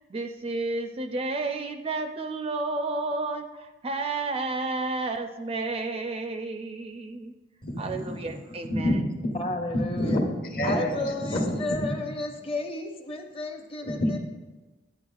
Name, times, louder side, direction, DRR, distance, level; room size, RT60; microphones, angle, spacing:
voice 1, 0.0-7.3 7.8-9.0, right 3 dB, 30° right, 7 dB, 0.4 m, -31 dB
voice 2, 7.6-8.1 8.7-9.4 9.7-11.8 13.8-14.2, left 1 dB, 50° left, 1 dB, 1.2 m, -28 dB
voice 3, 9.3-10.2 10.6-14.2, left 2 dB, 30° left, 3 dB, 0.8 m, -33 dB
9.9 x 9.4 x 2.3 m, 1.2 s
head